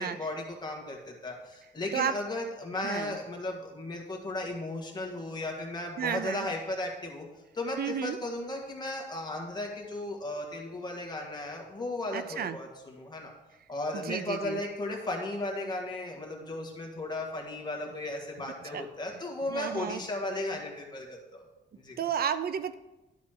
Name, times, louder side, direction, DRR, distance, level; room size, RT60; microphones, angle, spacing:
voice 1, 0.0-7.3 7.5-13.3 13.7-21.4 21.8-22.0, left 2 dB, 25° left, 0 dB, 1.7 m, -35 dB
voice 2, 2.8-3.2 6.0-6.5 7.8-8.2 12.1-12.6 13.9-14.6 18.7-18.9 19.5-20.0 22.0-22.7, right 8 dB, 55° right, 12 dB, 0.5 m, -32 dB
12.0 x 4.2 x 5.8 m, 1.0 s
wide cardioid pair, 160°, 18 cm